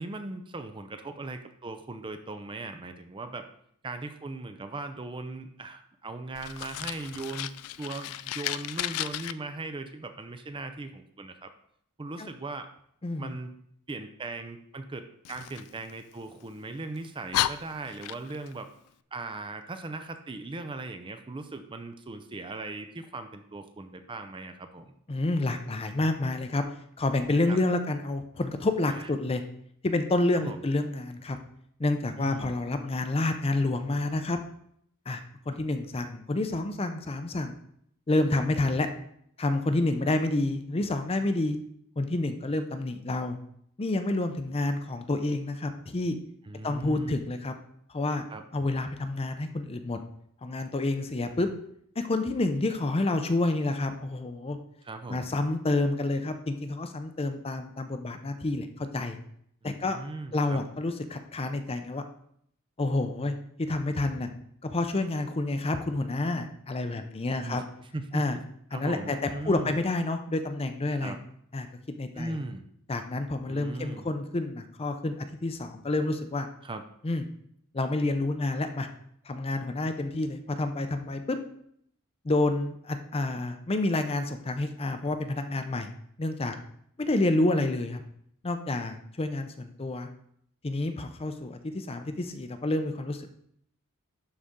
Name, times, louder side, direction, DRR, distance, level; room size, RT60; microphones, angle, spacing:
voice 1, 0.0-3.5 3.8-7.5 7.8-11.5 12.0-12.7 13.2-13.5 13.9-18.7 19.1-24.9 27.5-27.6 28.9-29.1 30.3-30.6 32.2-32.5 46.5-47.2 48.3-48.4 54.8-55.3 59.6-60.6 67.4-68.4 68.7-69.8 71.0-71.2 72.1-72.7 73.5-74.1 76.6-76.8, right 2 dB, 25° right, 8 dB, 0.5 m, -38 dB
Fire, 6.3-9.3 15.2-16.5 17.0-17.1 17.3-18.5, left 13 dB, 85° left, 0.3 m, -33 dB
voice 2, 13.0-13.3 25.1-26.6 27.0-29.4 29.8-31.4 31.8-34.4 35.1-35.2 35.5-37.6 38.1-38.9 39.4-41.6 42.0-43.4 43.8-46.2 46.6-47.5 47.9-48.2 48.5-50.0 50.4-51.5 52.0-54.6 55.1-59.2 59.6-60.0 60.3-62.0 62.8-64.3 64.6-67.6 68.1-68.4 68.7-71.2 71.5-71.7 72.0-72.4 72.9-75.1 75.4-76.5 77.0-77.2 77.7-78.9 79.3-81.4 82.2-85.9 86.2-86.6 87.0-88.0 88.4-90.1 90.6-93.3, left 2 dB, 25° left, 8 dB, 0.5 m, -29 dB
11.5 x 4.2 x 3.7 m, 0.69 s
head